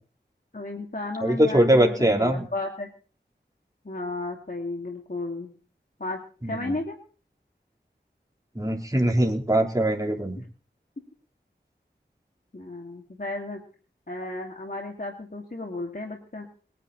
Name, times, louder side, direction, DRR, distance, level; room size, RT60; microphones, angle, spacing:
voice 1, 0.5-2.9 3.8-5.5 6.0-7.0 12.5-13.6 14.1-16.5, left 2 dB, 50° left, 1 dB, 2.7 m, -34 dB
voice 2, 1.2-2.5 6.4-6.7 8.6-10.4, right 1 dB, 20° right, 0 dB, 3.6 m, -22 dB
22.0 x 10.5 x 4.2 m, 0.39 s
wide cardioid pair, 45°, 19 cm